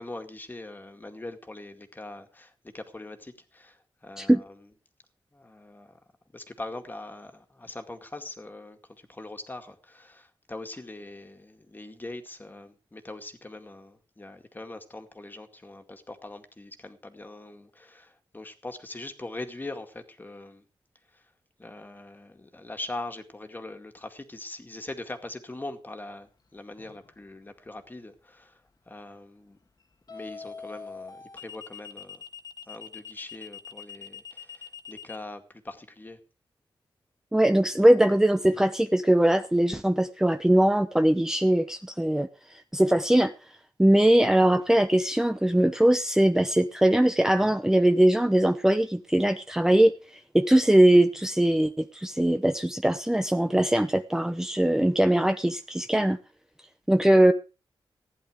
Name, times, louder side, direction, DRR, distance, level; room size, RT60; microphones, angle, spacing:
voice 1, 0.0-4.7 5.3-6.0 6.3-20.6 21.1-21.3 21.6-29.6 30.1-32.2 32.7-36.2, left 2 dB, 20° left, 2.1 m, -42 dB
sound 1, 26.8-27.1 30.1-35.2, left 6 dB, 50° left, 1.7 m, -42 dB
voice 2, 37.3-43.3 43.8-56.2 56.9-57.3, right 1 dB, 5° right, 0.8 m, -21 dB
15.5 x 10.5 x 5.0 m
wide cardioid pair, 110°, 9 cm